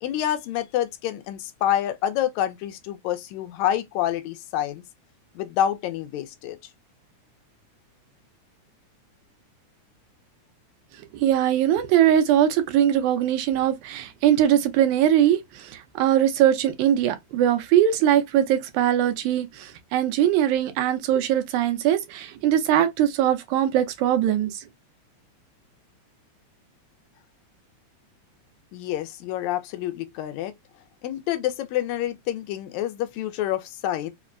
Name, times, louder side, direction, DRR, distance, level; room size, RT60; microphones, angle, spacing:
voice 1, 0.0-4.8 5.4-6.6 28.7-30.5 31.0-34.1, left 11 dB, 80° left, 1.9 m, -27 dB
voice 2, 11.1-24.6, right 10 dB, 80° right, 2.1 m, -21 dB
5.1 x 2.1 x 2.4 m
omnidirectional pair, 3.5 m